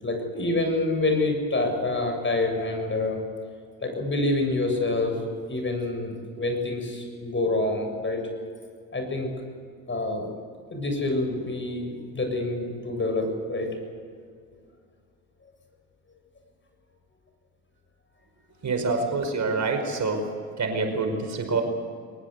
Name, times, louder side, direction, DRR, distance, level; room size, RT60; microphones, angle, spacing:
voice 1, 0.0-3.2 3.8-5.2 5.5-8.2 8.9-9.3 9.9-10.3 10.7-13.8, left 2 dB, 30° left, 5 dB, 7.5 m, -27 dB
voice 2, 18.6-20.3 20.6-21.6, right 3 dB, 45° right, 5 dB, 5.1 m, -26 dB
23.0 x 19.5 x 8.3 m, 2.2 s
supercardioid pair, 70°, 41 cm